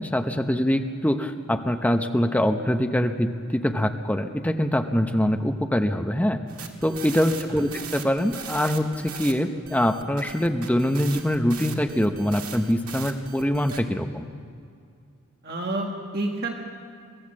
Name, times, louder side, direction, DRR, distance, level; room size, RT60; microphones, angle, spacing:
voice 1, 0.0-6.4 6.8-14.3, equal, 5° left, 6 dB, 0.8 m, -24 dB
sound 1, 6.5-9.3 9.7-13.8, right 7 dB, 75° right, 1.9 m, -39 dB
voice 2, 15.4-16.5, right 2 dB, 45° right, 1 dB, 1.7 m, -29 dB
23.5 x 15.5 x 7.5 m, 2.3 s
head